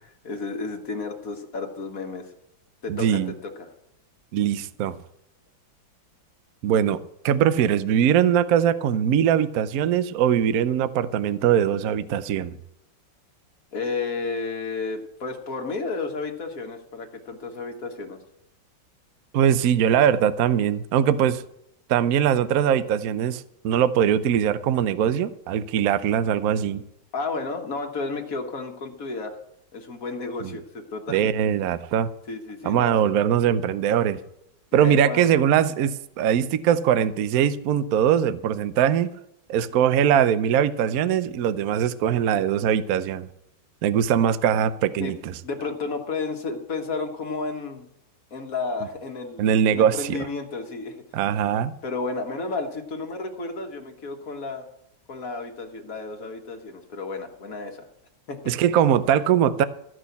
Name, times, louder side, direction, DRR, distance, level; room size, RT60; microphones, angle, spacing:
voice 1, 0.0-2.3 2.8-3.7 13.7-18.2 27.1-29.4 29.7-31.3 32.3-33.0 34.8-35.3 45.0-45.1 45.4-47.9 48.3-51.0 51.8-54.6 55.1-57.9 58.3-58.4, left 3 dB, 50° left, 1.7 m, -32 dB
voice 2, 2.9-3.3 4.3-5.0 6.6-7.0 7.2-12.6 19.3-21.4 21.9-26.8 30.4-30.5 31.1-32.1 32.6-34.2 34.7-39.1 39.5-43.3 43.8-45.3 49.4-50.3 51.1-51.7 58.5-59.6, right 9 dB, 65° right, 1.0 m, -21 dB
14.0 x 6.3 x 8.2 m
omnidirectional pair, 2.1 m